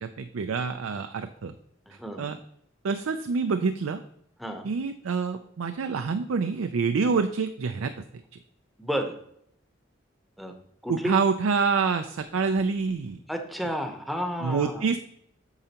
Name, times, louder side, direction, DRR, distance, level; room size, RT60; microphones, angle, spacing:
voice 1, 0.0-1.5 2.2-2.4 2.8-4.0 4.6-7.9 10.9-13.2 14.4-15.0, right 5 dB, 85° right, 8 dB, 0.4 m, -27 dB
voice 2, 1.9-2.3 4.4-4.7 8.8-9.2 10.4-10.5 10.8-11.2 13.3-14.9, equal, ahead, 4 dB, 0.8 m, -31 dB
8.5 x 6.7 x 2.9 m, 0.71 s
head